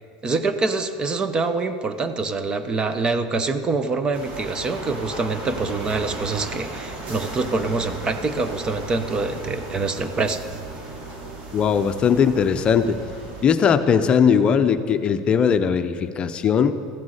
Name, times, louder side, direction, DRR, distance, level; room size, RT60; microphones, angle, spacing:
voice 1, 0.2-10.4, right 3 dB, 25° right, 10 dB, 0.9 m, -25 dB
sound 1, 4.1-13.5, right 2 dB, 45° right, 2.9 m, -35 dB
voice 2, 11.5-13.0 13.4-16.7, left 7 dB, 35° left, 9 dB, 0.6 m, -19 dB
14.5 x 9.4 x 6.5 m, 2.2 s
supercardioid pair, 115°, 3 cm